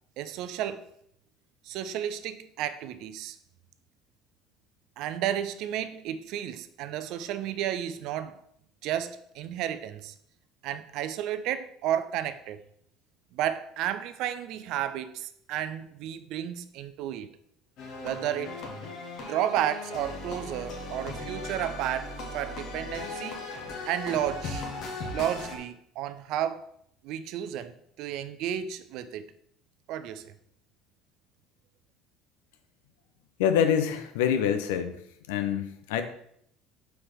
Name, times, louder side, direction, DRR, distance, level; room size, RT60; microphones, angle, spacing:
voice 1, 0.2-0.9 1.6-3.4 5.0-8.4 8.8-10.1 10.6-12.6 13.3-17.3 18.0-18.6 19.3-23.4 23.9-24.7 25.1-26.7 27.0-29.3 29.9-30.3, right 11 dB, 65° right, 0.5 m, -32 dB
sound 1, 17.8-25.6, left 2 dB, 60° left, 1.6 m, -38 dB
voice 2, 33.4-35.0 35.3-36.0, left 8 dB, 75° left, 0.6 m, -25 dB
4.6 x 4.3 x 4.9 m
hypercardioid pair, 65°, 0 cm